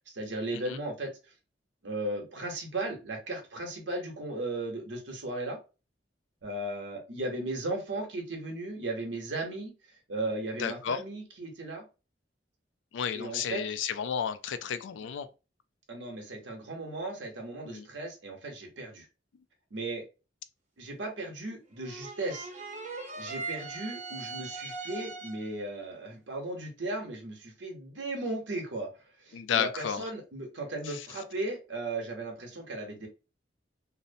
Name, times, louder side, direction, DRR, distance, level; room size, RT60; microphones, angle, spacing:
voice 1, 0.1-1.1 1.8-5.6 6.4-9.7 10.1-11.8 13.1-13.6 15.9-19.1 19.7-20.0 20.8-22.5 23.2-28.9 29.2-33.1, right 2 dB, 85° right, 0.9 m, -36 dB
voice 2, 10.6-11.0 12.9-15.3 17.7-17.9 29.3-30.0 30.9-31.0, left 8 dB, 85° left, 0.3 m, -32 dB
sound 1, 21.8-25.6, right 3 dB, 40° right, 0.6 m, -40 dB
2.6 x 2.0 x 2.6 m
head